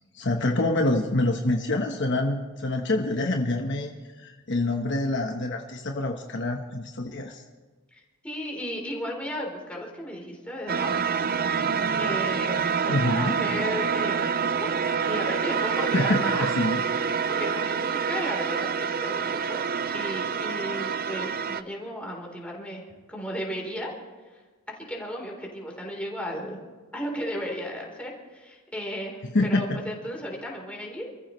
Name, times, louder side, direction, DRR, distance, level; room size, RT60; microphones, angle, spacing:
voice 1, 0.1-3.9 4.2-7.4 12.9-13.4 15.9-16.8 29.3-29.7, left 2 dB, 55° left, 2 dB, 1.2 m, -26 dB
voice 2, 7.9-11.2 12.0-16.5 16.8-19.6 19.9-22.8 23.1-23.9 24.7-26.6 26.9-31.1, equal, 5° left, -1 dB, 3.8 m, -35 dB
sound 1, 10.7-21.6, right 6 dB, 40° right, 0.5 m, -27 dB
28.0 x 14.5 x 3.2 m, 1.4 s
head